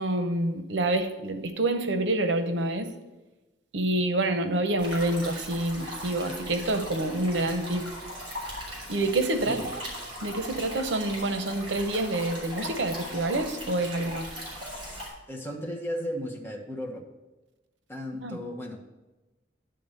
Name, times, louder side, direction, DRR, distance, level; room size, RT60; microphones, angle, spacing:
voice 1, 0.0-2.9 3.7-7.8 8.9-9.8 10.2-14.3 18.2-18.4, right 2 dB, 75° right, 8 dB, 0.8 m, -27 dB
sound 1, 4.8-15.1, equal, 30° right, 3.4 m, -39 dB
voice 2, 14.6-17.0 17.9-18.8, equal, 15° left, -1 dB, 1.1 m, -36 dB
10.5 x 3.8 x 6.5 m, 1.1 s
head